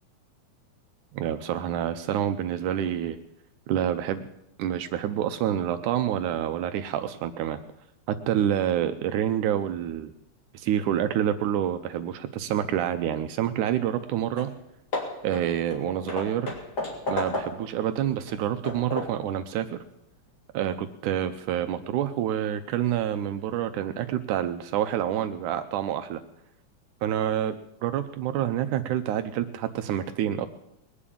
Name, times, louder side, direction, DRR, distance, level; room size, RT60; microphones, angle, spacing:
voice 1, 1.1-3.2 3.7-4.2 4.6-7.6 8.1-10.1 10.5-14.5 15.2-16.6 17.1-19.8 20.5-26.2 27.0-27.6 27.8-30.5, right 10 dB, 80° right, 9 dB, 2.2 m, -27 dB
Hammer / Wood, 14.0-14.1 14.4-14.6 14.9-17.8 18.3-19.3, left 2 dB, 30° left, 3.3 m, -33 dB
21.5 x 7.4 x 8.6 m, 0.81 s
omnidirectional pair, 3.6 m